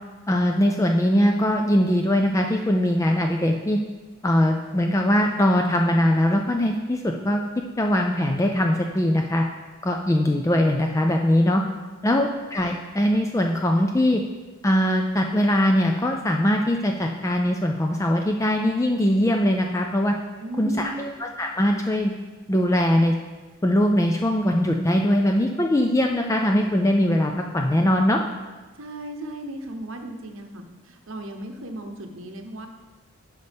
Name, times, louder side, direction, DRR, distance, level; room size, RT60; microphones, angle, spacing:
voice 1, 0.3-3.8 4.2-7.4 7.8-9.4 9.8-11.6 12.0-14.2 14.6-20.2 20.6-22.1 22.5-23.1 23.6-28.2, left 1 dB, 15° left, 2 dB, 0.3 m, -21 dB
voice 2, 20.4-21.2 28.8-32.7, right 1 dB, 70° right, 5 dB, 0.8 m, -36 dB
10.5 x 5.5 x 3.4 m, 1.3 s
head